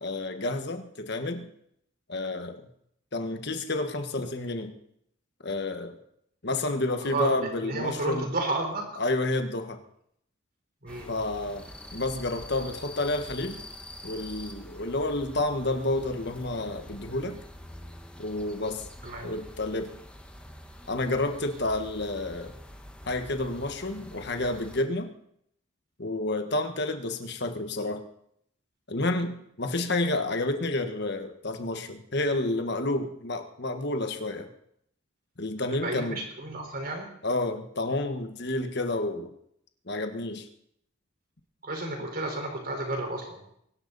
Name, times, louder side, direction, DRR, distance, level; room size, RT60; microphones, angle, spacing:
voice 1, 0.0-1.5 2.1-2.7 3.1-4.7 5.4-6.0 6.4-8.3 9.0-9.8 11.1-13.6 14.0-17.4 18.2-18.9 19.2-19.9 20.9-22.5 23.0-25.1 26.0-28.0 28.9-34.5 35.4-36.2 37.2-39.3 39.9-40.4, left 2 dB, 55° left, 6 dB, 1.4 m, -30 dB
voice 2, 7.6-8.9 10.8-11.1 19.0-19.3 35.8-37.1 41.6-43.4, right 2 dB, 45° right, 2 dB, 4.4 m, -32 dB
sound 1, 10.9-24.8, left 1 dB, 5° left, 1.2 m, -46 dB
23.5 x 12.0 x 4.1 m, 0.73 s
head